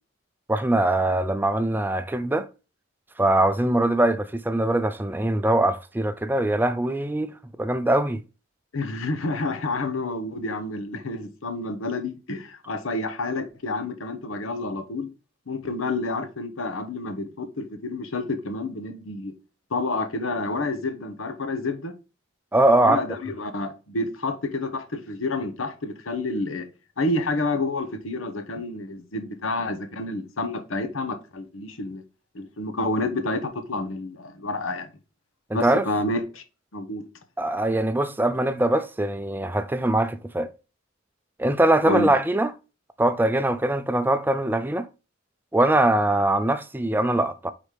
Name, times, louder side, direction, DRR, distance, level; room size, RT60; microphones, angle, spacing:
voice 1, 0.5-2.5 3.2-7.3 7.6-8.2 22.5-23.0 35.5-35.8 37.4-40.5 41.4-42.5 43.0-44.9 45.5-47.5, right 1 dB, 10° right, 0.4 m, -22 dB
voice 2, 8.7-15.1 15.5-19.3 19.7-21.9 22.7-26.7 27.0-32.0 32.3-34.9 35.5-36.4 36.7-37.0 41.9-42.1, left 2 dB, 85° left, 1.0 m, -29 dB
4.9 x 4.1 x 5.0 m
head